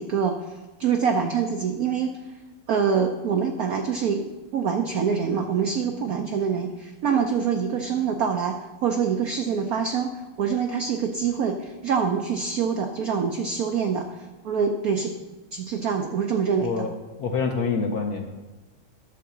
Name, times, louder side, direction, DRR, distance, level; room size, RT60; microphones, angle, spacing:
voice 1, 0.0-2.2 2.7-4.2 4.5-14.2 14.4-15.1 15.5-16.9, right 6 dB, 75° right, 4 dB, 0.8 m, -25 dB
voice 2, 16.6-18.4, left 5 dB, 65° left, 3 dB, 1.0 m, -27 dB
11.0 x 3.9 x 7.1 m, 1.1 s
omnidirectional pair, 2.3 m